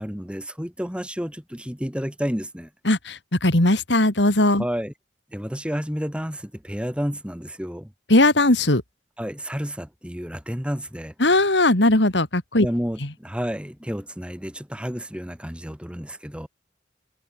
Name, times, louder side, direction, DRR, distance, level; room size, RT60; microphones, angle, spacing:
voice 1, 0.0-2.7 4.6-4.9 5.3-7.9 9.2-11.1 12.6-16.5, equal, 5° right, 7.7 m, -30 dB
voice 2, 2.9-4.6 8.1-8.8 11.2-12.7, left 1 dB, 70° left, 3.2 m, -18 dB
head